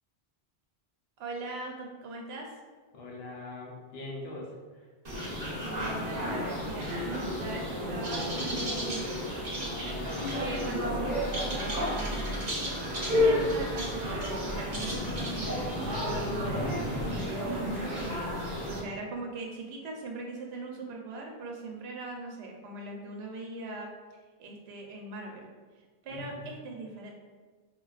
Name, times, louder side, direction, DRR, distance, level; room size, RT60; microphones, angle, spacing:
voice 1, 1.2-2.5 5.6-6.9 7.4-9.4 10.4-12.5 13.1-16.6 17.1-18.4 18.6-23.9 24.4-25.5 26.0-27.1, right 2 dB, 75° right, 0 dB, 0.8 m, -40 dB
voice 2, 2.9-4.8 9.9-10.4 13.0-13.5 26.1-26.5, left 2 dB, 70° left, -3 dB, 0.9 m, -43 dB
sound 1, 5.0-18.8, equal, 45° right, 0.7 m, -31 dB
3.4 x 2.3 x 2.3 m, 1.4 s
omnidirectional pair, 1.1 m